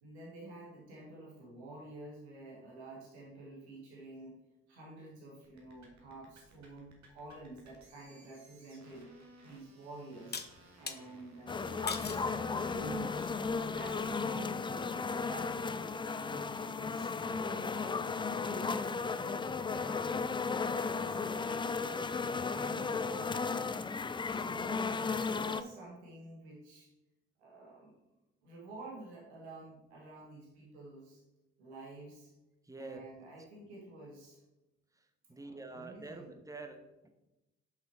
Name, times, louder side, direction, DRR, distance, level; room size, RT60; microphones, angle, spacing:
voice 1, 0.0-4.4 4.7-9.1 9.4-12.3 12.6-13.4 13.7-18.1 18.4-20.3 20.7-23.8 24.3-26.9 27.4-28.0 28.4-31.2 31.6-32.3 32.8-34.4 35.3-36.3, right 2 dB, 90° right, -3 dB, 1.3 m, -49 dB
sound 1, 5.4-15.2, right 2 dB, 55° right, 1.7 m, -58 dB
sound 2, 9.0-9.1 10.3-11.0 11.9-12.3 12.9-13.3, left 5 dB, 30° left, 0.8 m, -40 dB
sound 3, 11.5-25.6, left 4 dB, 15° left, 0.3 m, -35 dB
voice 2, 32.6-33.1 34.9-37.1, right 3 dB, 10° right, 6 dB, 1.0 m, -47 dB
5.7 x 5.5 x 4.4 m, 0.97 s
hypercardioid pair, 40°, 32 cm